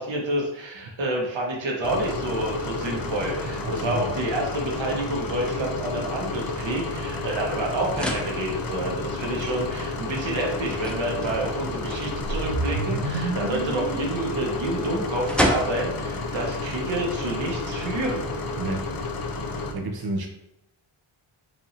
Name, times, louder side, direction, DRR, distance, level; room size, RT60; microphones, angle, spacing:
voice 1, 0.0-18.2, right 1 dB, 65° right, -1 dB, 1.2 m, -29 dB
sound 1, 1.8-19.7, left 3 dB, 45° left, 0.6 m, -31 dB
voice 2, 3.6-4.1 18.6-18.9 19.1-19.3 19.7-20.3, right 2 dB, 50° right, 2 dB, 0.6 m, -30 dB
sound 2, 7.3-18.1, equal, ahead, 0.6 m, -35 dB
sound 3, 12.2-16.4, right 3 dB, 85° right, 0.7 m, -32 dB
4.7 x 2.8 x 2.7 m, 0.83 s
cardioid pair, 60°, 48 cm